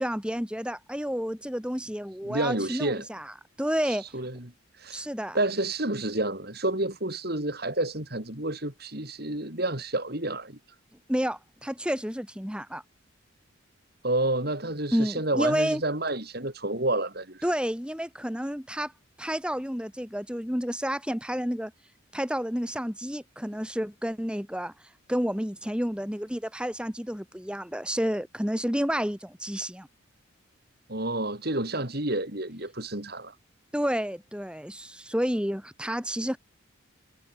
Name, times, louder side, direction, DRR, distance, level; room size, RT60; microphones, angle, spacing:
voice 1, 0.0-3.3 3.6-4.0 4.9-5.4 11.1-12.8 14.9-15.8 17.4-18.9 19.2-21.7 22.1-24.7 25.1-29.9 33.7-36.4, equal, 5° right, 3.2 m, -30 dB
voice 2, 2.2-3.1 3.8-5.1 5.3-10.6 14.0-17.5 30.9-33.4, right 2 dB, 50° right, 4.4 m, -30 dB
head